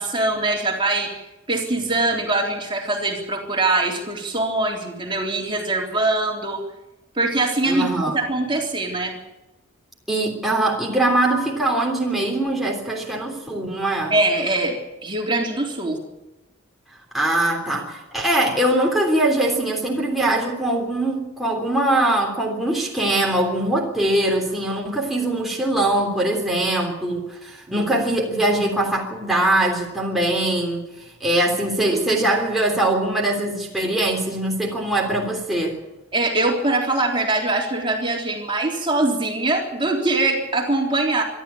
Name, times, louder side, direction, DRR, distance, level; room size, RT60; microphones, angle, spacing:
voice 1, 0.0-6.6 7.2-9.1 14.1-14.8 15.0-16.0 27.7-27.9 31.9-32.0 36.1-41.2, right 2 dB, 25° right, 0 dB, 3.7 m, -23 dB
voice 2, 7.6-8.2 10.1-14.1 17.1-35.8, right 1 dB, ahead, -2 dB, 3.4 m, -22 dB
26.0 x 12.5 x 8.5 m, 0.98 s
head